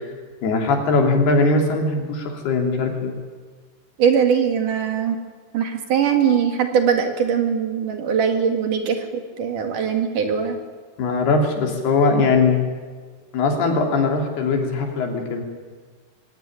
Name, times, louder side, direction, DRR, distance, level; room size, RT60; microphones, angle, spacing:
voice 1, 0.4-3.1 11.0-12.6 13.3-15.4, left 3 dB, 75° left, 2 dB, 5.1 m, -20 dB
voice 2, 4.0-5.2 5.5-10.6, right 7 dB, 60° right, 5 dB, 3.2 m, -21 dB
22.5 x 17.5 x 10.0 m, 1.5 s
omnidirectional pair, 4.6 m